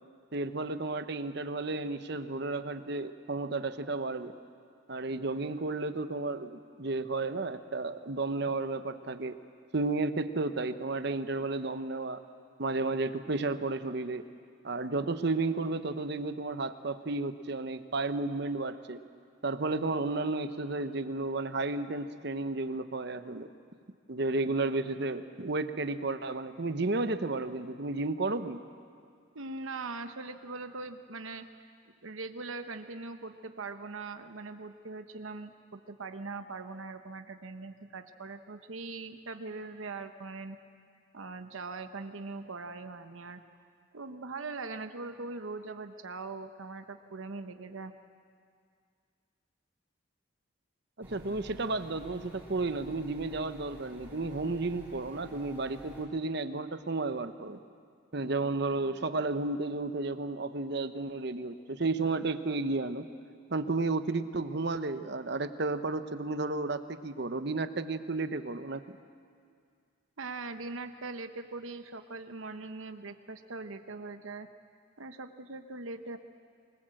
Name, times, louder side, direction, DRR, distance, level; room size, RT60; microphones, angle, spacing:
voice 1, 0.3-4.3 4.9-9.4 9.7-12.2 12.6-14.2 14.6-19.0 19.4-23.5 24.1-28.6 51.0-57.6 58.1-63.1 63.5-69.0, right 3 dB, 55° right, 10 dB, 0.9 m, -32 dB
voice 2, 29.3-31.7 32.0-40.6 41.1-43.4 43.9-47.9 70.2-74.5 75.0-76.2, right 3 dB, 80° right, 8 dB, 1.0 m, -41 dB
sound 1, 51.0-56.0, equal, 10° right, 5.0 m, -51 dB
25.0 x 20.0 x 7.7 m, 2.2 s
head